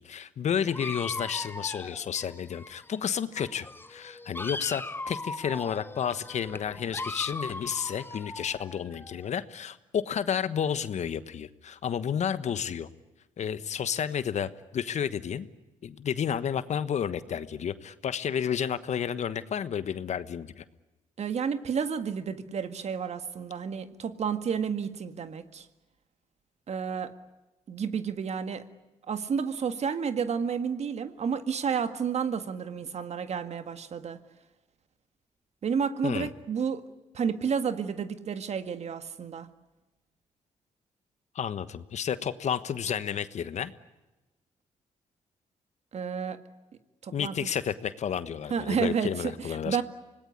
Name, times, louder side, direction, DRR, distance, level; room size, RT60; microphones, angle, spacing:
voice 1, 0.0-12.9 13.4-15.5 15.8-20.6 36.0-36.3 41.3-43.7 47.1-49.8, left 8 dB, 65° left, 13 dB, 1.3 m, -31 dB
Dog, 0.7-3.1 3.3-9.3, left 2 dB, 15° left, 1.0 m, -39 dB
voice 2, 21.2-25.7 26.7-27.1 27.7-28.6 29.1-34.2 35.6-36.8 37.1-39.5 45.9-46.4 47.0-47.5 48.5-49.8, right 6 dB, 60° right, 10 dB, 1.8 m, -31 dB
25.5 x 19.0 x 9.8 m, 1.1 s
supercardioid pair, 65°, 13 cm